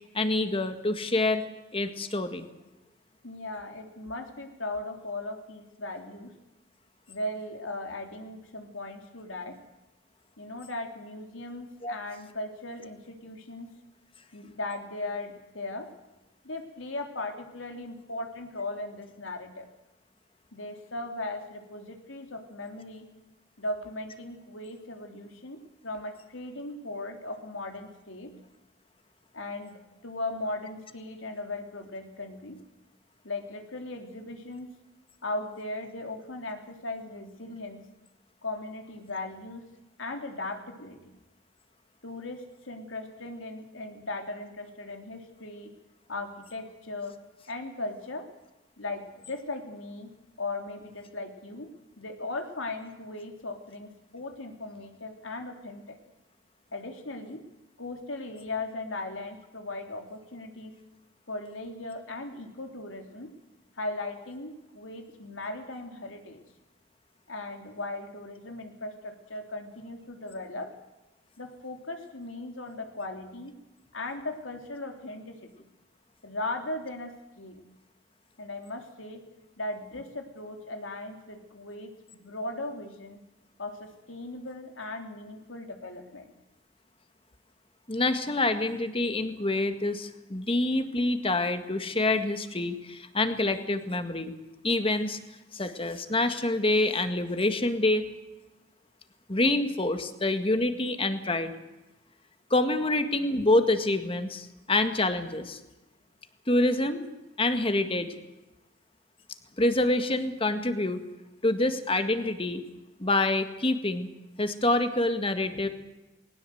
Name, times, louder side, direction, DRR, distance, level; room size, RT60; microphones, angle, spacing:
voice 1, 0.1-1.4 1.7-2.4 11.8-11.9 87.9-94.3 94.6-95.2 95.5-98.1 99.3-101.5 102.5-105.6 106.5-107.0 107.4-108.1 109.6-111.0 111.4-112.6 113.0-114.1 114.4-115.7, left 2 dB, 30° left, 8 dB, 1.8 m, -26 dB
voice 2, 3.2-6.4 7.1-9.6 10.4-13.7 14.3-15.9 16.4-19.7 20.5-23.1 23.6-28.3 29.3-32.6 33.2-34.7 35.2-37.9 38.4-39.7 40.0-41.0 42.0-45.7 46.1-47.2 47.5-48.3 48.8-50.1 50.4-56.0 56.7-57.5 57.8-60.8 61.3-63.3 63.8-66.4 67.3-70.7 71.4-73.5 73.9-75.5 76.2-77.6 78.4-79.2 79.6-83.2 83.6-86.3, left 2 dB, 85° left, 4 dB, 3.5 m, -38 dB
20.5 x 19.0 x 7.9 m, 1.0 s
head